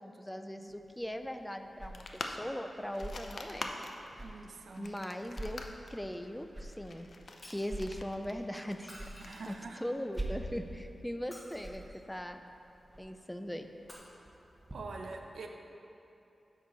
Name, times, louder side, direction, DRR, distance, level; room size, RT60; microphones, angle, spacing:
voice 1, 0.0-3.7 4.8-5.6 5.9-7.1 7.5-8.9 9.5-12.4 13.0-13.7, equal, 5° left, 7 dB, 0.4 m, -39 dB
sound 1, 0.7-14.7, right 1 dB, 15° right, 0.9 m, -47 dB
sound 2, 1.9-10.2, left 2 dB, 55° left, 0.5 m, -46 dB
voice 2, 4.2-4.9 9.2-9.8 14.7-15.5, right 4 dB, 80° right, 3 dB, 0.7 m, -45 dB
Shatter, 7.4-7.8 8.8-9.8 11.2-12.1 13.8-13.9, equal, 25° left, 1.4 m, -53 dB
9.5 x 6.4 x 4.0 m, 2.8 s
wide cardioid pair, 155°, 0 cm